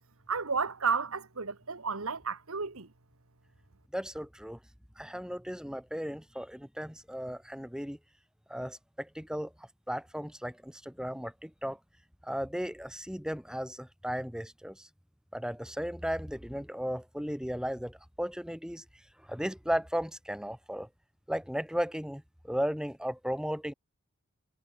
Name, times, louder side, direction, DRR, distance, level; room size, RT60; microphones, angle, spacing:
voice 1, 0.3-2.9, right 5 dB, 70° right, 1.6 m, -32 dB
voice 2, 3.9-4.6 5.0-8.0 8.5-11.8 12.2-14.9 15.3-18.8 19.2-20.9 21.3-23.7, equal, 5° right, 6.0 m, -35 dB
head